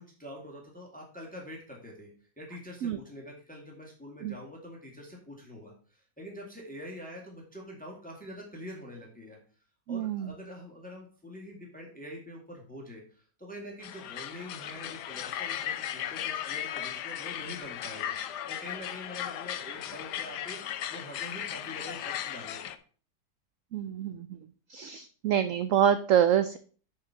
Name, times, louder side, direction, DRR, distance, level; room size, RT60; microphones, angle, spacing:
voice 1, 0.0-2.1 2.4-9.4 9.9-22.6, equal, 5° left, -1 dB, 1.9 m, -45 dB
voice 2, 9.9-10.3 23.7-24.3 24.7-26.6, right 9 dB, 70° right, 11 dB, 0.7 m, -26 dB
sound 1, 13.8-22.8, left 11 dB, 75° left, 1.2 m, -36 dB
7.5 x 4.8 x 5.8 m, 0.42 s
omnidirectional pair, 1.8 m